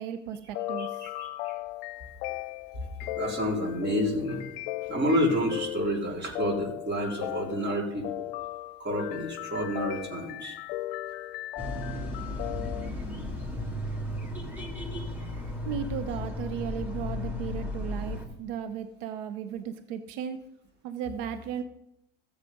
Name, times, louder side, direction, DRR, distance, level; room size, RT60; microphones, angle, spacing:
voice 1, 0.0-1.0 15.6-20.4 20.8-21.6, right 8 dB, 75° right, 11 dB, 0.8 m, -35 dB
sound 1, 0.5-12.9, left 16 dB, 75° left, 0.6 m, -37 dB
voice 2, 0.8-1.6 3.1-4.4 4.9-8.3 8.8-10.6, equal, 35° right, 0 dB, 3.6 m, -29 dB
sound 2, 11.6-18.2, left 2 dB, 5° right, 2.6 m, -34 dB
14.0 x 7.3 x 5.3 m, 0.84 s
hypercardioid pair, 75°, 29 cm